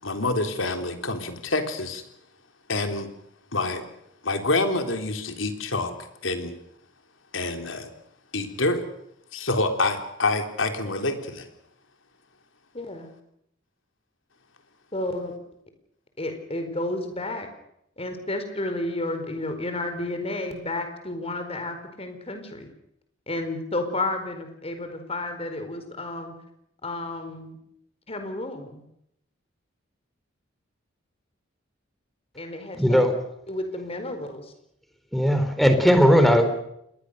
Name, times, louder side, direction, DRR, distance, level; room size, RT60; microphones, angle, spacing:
voice 1, 0.0-2.0 2.7-3.1 3.5-3.8 4.2-5.9 6.2-6.5 7.3-7.9 8.3-8.8 9.3-11.5, left 2 dB, 80° left, 6 dB, 3.6 m, -26 dB
voice 2, 12.7-13.1 14.9-15.3 16.2-17.5 18.0-22.7 23.3-26.3 26.8-27.6 28.1-28.8 32.3-33.0 33.5-34.5, left 2 dB, 30° left, 7 dB, 4.5 m, -31 dB
voice 3, 32.7-33.1 35.1-36.5, equal, ahead, 7 dB, 3.8 m, -18 dB
27.5 x 21.5 x 6.7 m, 0.77 s
head